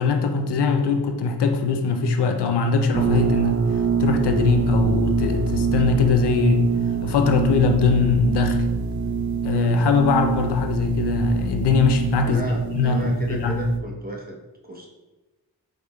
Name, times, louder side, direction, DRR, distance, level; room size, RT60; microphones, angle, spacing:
voice 1, 0.0-6.7 7.0-8.6 9.4-12.4 12.7-13.6, left 4 dB, 80° left, 6 dB, 0.5 m, -21 dB
sound 1, 2.9-13.8, right 5 dB, 50° right, 0.5 m, -25 dB
voice 2, 12.2-14.4 14.6-14.9, right 1 dB, 25° right, -1 dB, 0.9 m, -34 dB
4.9 x 3.2 x 2.3 m, 1.1 s
cardioid pair, 55°, 40 cm